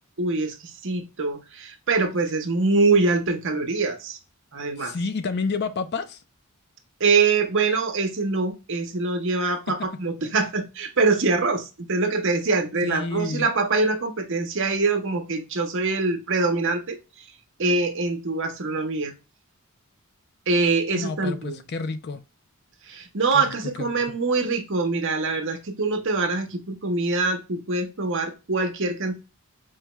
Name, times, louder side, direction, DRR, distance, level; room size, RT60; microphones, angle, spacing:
voice 1, 0.2-4.2 4.5-4.9 7.0-17.0 17.6-19.1 20.5-21.6 22.9-29.2, right 3 dB, 55° right, 0.8 m, -24 dB
voice 2, 4.8-6.2 12.8-13.5 20.9-22.2 23.3-24.0, left 4 dB, 45° left, 0.4 m, -30 dB
4.6 x 2.2 x 2.9 m
head